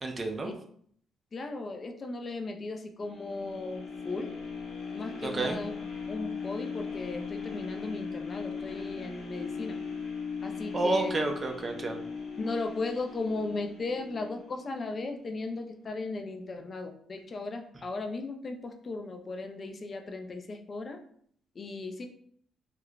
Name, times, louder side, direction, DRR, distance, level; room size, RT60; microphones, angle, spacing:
voice 1, 0.0-0.5 5.2-5.6 10.7-12.0, right 3 dB, 35° right, 4 dB, 0.4 m, -30 dB
voice 2, 1.3-4.3 4.9-5.7 6.1-9.8 10.4-11.1 12.4-21.0 21.6-22.1, left 3 dB, 40° left, 5 dB, 0.3 m, -36 dB
sound 1, 3.0-15.1 15.6-15.7, left 5 dB, 75° left, 0.6 m, -39 dB
3.0 x 2.0 x 2.3 m, 0.62 s
cardioid pair, 90°, 0 cm